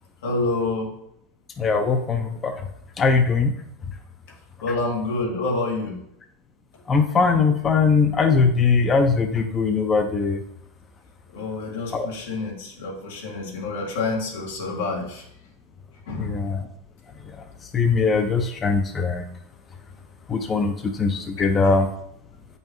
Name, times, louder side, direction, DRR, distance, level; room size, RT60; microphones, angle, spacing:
voice 1, 0.2-0.9 4.6-6.0 11.3-15.2 16.1-16.5 21.4-21.7, left 3 dB, 85° left, -1 dB, 1.9 m, -28 dB
voice 2, 1.6-2.7 3.0-3.5 6.9-10.4 11.9-12.1 16.1-16.6 17.7-19.2 20.3-21.9, left 4 dB, 20° left, 5 dB, 0.5 m, -21 dB
8.0 x 5.4 x 3.0 m, 0.76 s
supercardioid pair, 145°, 0 cm